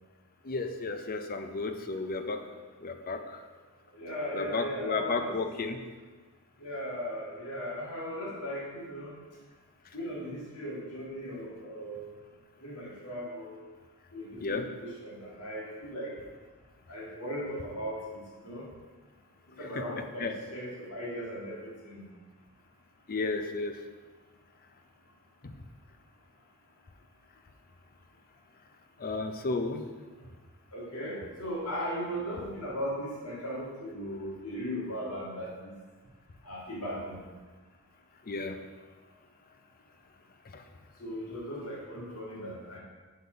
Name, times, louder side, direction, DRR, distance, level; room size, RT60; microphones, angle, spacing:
voice 1, 0.4-2.4 2.8-3.4 4.3-5.8 14.4-14.6 19.7-19.8 20.2-20.3 23.1-23.8 29.0-29.8 38.3-38.6 40.5-40.6, left 3 dB, 40° left, 7 dB, 0.6 m, -33 dB
voice 2, 3.9-5.4 6.6-9.1 9.9-12.1 12.6-13.6 14.1-16.1 16.9-18.7 19.6-22.1 30.7-35.7 36.4-37.2 41.0-42.8, equal, 75° left, -4 dB, 2.1 m, -37 dB
6.7 x 4.3 x 5.1 m, 1.3 s
head